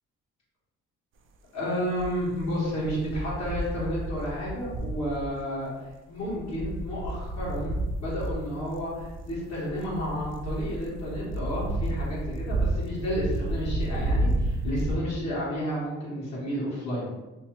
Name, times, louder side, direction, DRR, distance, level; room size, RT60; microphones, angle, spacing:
voice 1, 1.5-5.7 6.1-17.1, equal, 60° left, -8 dB, 1.4 m, -31 dB
sound 1, 2.0-5.3 6.2-14.9, right 1 dB, 45° right, 0.4 m, -31 dB
2.9 x 2.4 x 3.1 m, 1.1 s
cardioid pair, 90°, 30 cm